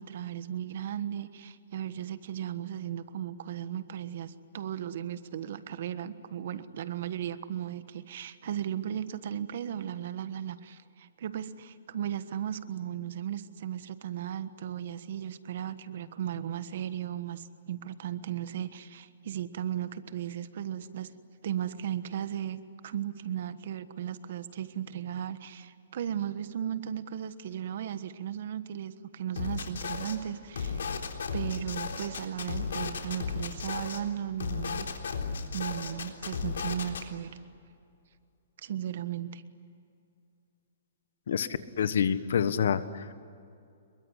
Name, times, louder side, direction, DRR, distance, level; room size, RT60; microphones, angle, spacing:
voice 1, 0.0-21.1 21.4-30.9 31.3-34.9 35.5-37.4 38.6-39.4, right 10 dB, 55° right, 12 dB, 1.3 m, -36 dB
sound 1, 29.4-30.2 30.5-34.0 34.4-37.0, left 5 dB, 85° left, 3.7 m, -34 dB
voice 2, 41.3-43.1, left 7 dB, 65° left, 13 dB, 1.4 m, -28 dB
26.5 x 23.0 x 9.9 m, 2.4 s
hypercardioid pair, 165°, 0 cm